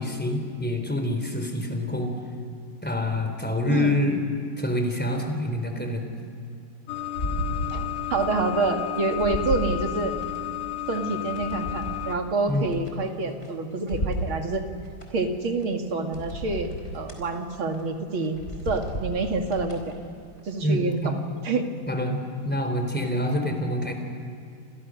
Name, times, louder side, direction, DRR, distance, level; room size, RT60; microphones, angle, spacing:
voice 1, 0.0-2.1 2.8-4.2 4.6-6.1 12.5-12.7 20.6-21.3 21.9-24.0, left 1 dB, 5° left, 4 dB, 3.7 m, -26 dB
sound 1, 6.9-12.2, left 13 dB, 80° left, 1.8 m, -32 dB
sound 2, 7.1-8.4 8.7-10.4 10.9-13.5 13.9-15.1 15.6-15.7 16.1-17.2 17.7-17.9 18.2-19.9 20.4-20.5, left 1 dB, 30° left, 4.7 m, -33 dB
voice 2, 7.7-10.1 10.9-14.6 15.1-18.4 18.7-20.0 20.4-21.0 21.4-21.7, right 3 dB, 70° right, 3 dB, 3.1 m, -27 dB
30.0 x 27.0 x 6.4 m, 2.5 s
omnidirectional pair, 2.3 m